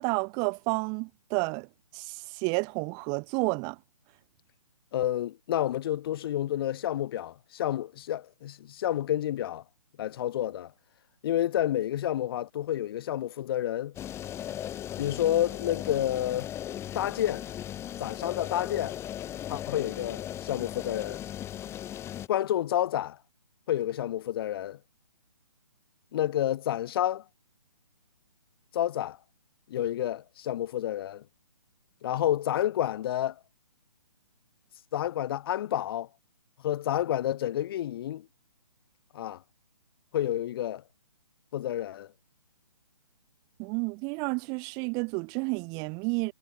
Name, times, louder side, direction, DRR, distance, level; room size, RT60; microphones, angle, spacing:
voice 1, 0.0-1.7 1.9-3.8 43.6-46.3, right 34 dB, 20° right, 3.5 m, -30 dB
voice 2, 4.9-9.6 10.0-10.7 11.2-13.9 15.0-16.5 16.9-17.4 18.0-19.0 19.5-21.2 22.3-23.2 23.7-24.8 26.1-27.2 28.7-29.2 29.7-31.2 32.0-33.3 34.9-36.1 36.6-38.3 39.1-39.4 40.1-40.8 41.5-42.1, left 12 dB, 40° left, 6.2 m, -29 dB
sound 1, 13.9-22.3, left 11 dB, 15° left, 4.0 m, -37 dB
figure-of-eight pair, 145°, 19 cm